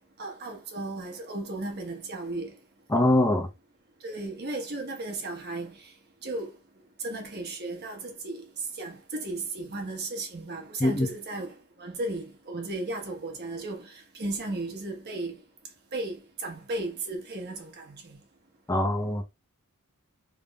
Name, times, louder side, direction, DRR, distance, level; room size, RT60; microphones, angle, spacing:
voice 1, 0.2-2.5 4.0-5.8 6.2-6.5 7.0-8.5 8.8-15.4 15.9-18.2, right 2 dB, 45° right, 1.2 m, -35 dB
voice 2, 2.9-3.5 10.8-11.1 18.7-19.2, left 1 dB, 15° left, 0.6 m, -23 dB
3.8 x 3.4 x 2.3 m
head